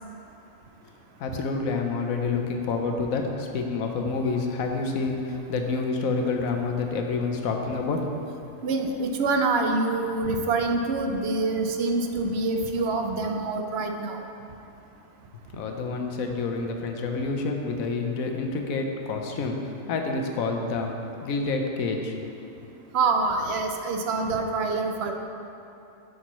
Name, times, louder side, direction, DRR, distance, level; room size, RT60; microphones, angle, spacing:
voice 1, 1.2-8.0 15.5-19.6 19.9-20.9 21.2-22.1, left 4 dB, 85° left, 3 dB, 1.1 m, -28 dB
voice 2, 8.6-14.2 22.9-25.1, right 3 dB, 60° right, 4 dB, 0.7 m, -26 dB
8.1 x 6.3 x 3.0 m, 2.9 s
omnidirectional pair, 1.4 m